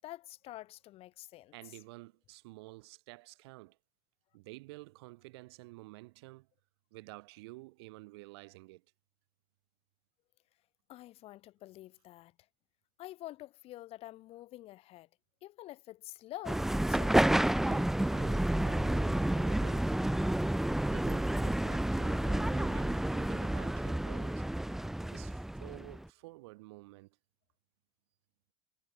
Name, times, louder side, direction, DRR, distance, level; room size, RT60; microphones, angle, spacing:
voice 1, 0.0-1.5 10.9-12.3 13.0-15.1 15.4-17.5, left 15 dB, 45° left, 6.2 m, -48 dB
voice 2, 1.5-3.8 4.3-6.5 6.9-8.8 17.5-19.9 20.9-24.4 25.1-27.2, right 22 dB, 80° right, 3.8 m, -51 dB
sound 1, 16.4-26.0, right 1 dB, 5° right, 0.4 m, -30 dB
supercardioid pair, 130°, 13 cm